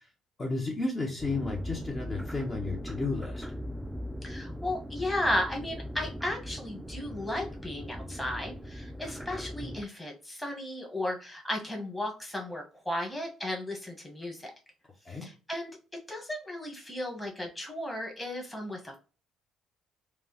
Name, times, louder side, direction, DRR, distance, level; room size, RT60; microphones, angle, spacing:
voice 1, 0.4-3.5 15.0-15.3, left 3 dB, 35° left, -1 dB, 1.0 m, -33 dB
sound 1, 1.2-9.9, equal, 5° right, 0.3 m, -39 dB
voice 2, 4.2-14.5 15.2-15.7 16.1-19.0, left 1 dB, 10° left, 1 dB, 1.3 m, -34 dB
3.3 x 2.3 x 2.9 m, 0.34 s
hypercardioid pair, 50°, 0 cm